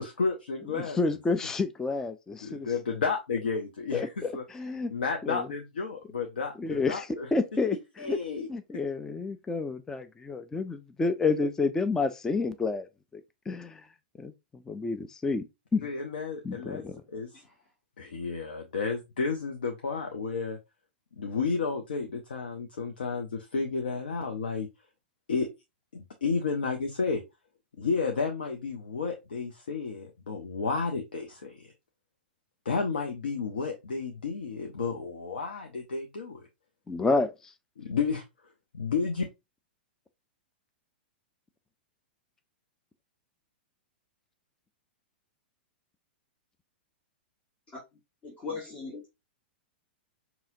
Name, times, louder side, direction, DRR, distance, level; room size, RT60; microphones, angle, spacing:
voice 1, 0.0-1.2 2.4-4.4 4.9-7.3 8.0-8.5 15.8-17.3 18.0-20.6 21.2-24.7 25.3-25.5 25.9-27.2 27.8-31.7 32.6-36.4 37.8-38.2 38.7-39.2, left 5 dB, 65° left, 0.7 m, -32 dB
voice 2, 0.7-2.7 3.9-4.9 5.2-5.5 6.6-7.8 8.1-8.2 8.5-12.9 13.1-13.9 14.2-15.4 15.7-15.9 16.4-17.0 36.9-37.5, left 3 dB, 10° left, 0.4 m, -30 dB
voice 3, 48.2-49.1, left 4 dB, 25° left, 1.4 m, -39 dB
5.5 x 2.9 x 2.6 m
figure-of-eight pair, 100°, 6 cm